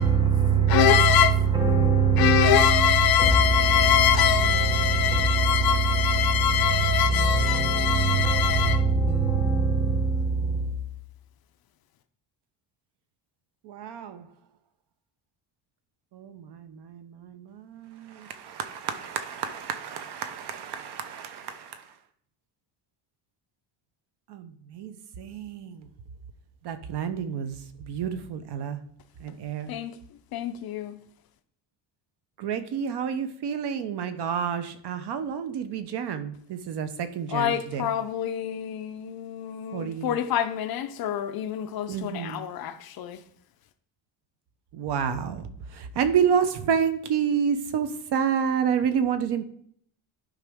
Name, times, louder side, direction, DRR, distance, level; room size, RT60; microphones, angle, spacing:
voice 1, 0.0-10.8, right 5 dB, 10° right, 0.9 m, -23 dB
voice 2, 0.7-1.4 2.2-8.8 29.7-29.9 30.3-31.0 37.3-43.2, left 11 dB, 55° left, 0.6 m, -24 dB
voice 3, 13.7-14.2 16.1-21.8 24.3-25.8 26.6-27.6 27.9-28.8 29.2-29.7 32.4-37.9 39.7-40.2 41.9-42.4 44.7-45.4 45.8-49.4, right 7 dB, 60° right, 0.8 m, -29 dB
11.5 x 5.0 x 3.5 m
cardioid pair, 175°, 45 cm